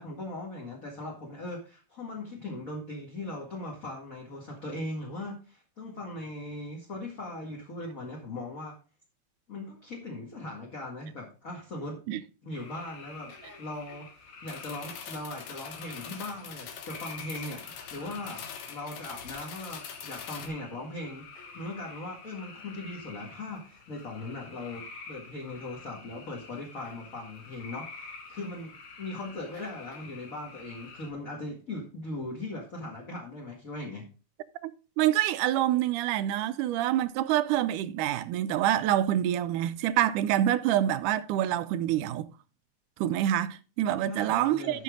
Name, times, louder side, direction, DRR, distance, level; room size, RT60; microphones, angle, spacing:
voice 1, 0.0-8.8 9.5-12.0 12.4-21.3 21.5-34.1 44.0-44.8, left 2 dB, 30° left, 2.1 m, -39 dB
sound 1, 12.5-31.1, left 4 dB, 65° left, 3.3 m, -48 dB
sound 2, 14.5-20.5, left 7 dB, 85° left, 2.9 m, -43 dB
voice 2, 35.0-42.3 43.0-44.8, right 12 dB, 85° right, 2.2 m, -26 dB
13.0 x 6.2 x 3.8 m
omnidirectional pair, 3.5 m